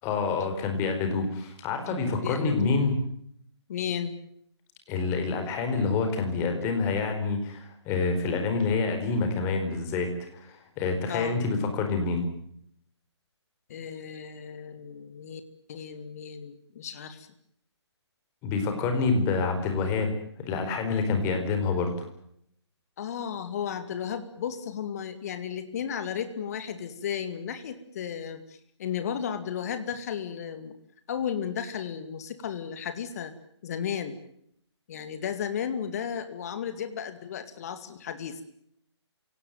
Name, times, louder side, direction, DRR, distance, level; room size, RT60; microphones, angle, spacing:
voice 1, 0.0-3.0 4.9-12.2 18.4-22.1, left 4 dB, 20° left, 6 dB, 4.5 m, -27 dB
voice 2, 2.2-2.8 3.7-4.2 11.1-11.4 13.7-15.4 15.7-17.3 23.0-30.7 31.1-33.3 33.6-34.2 34.9-38.4, left 8 dB, 35° left, 10 dB, 2.3 m, -34 dB
28.0 x 18.0 x 9.3 m, 0.71 s
figure-of-eight pair, 140°, 15 cm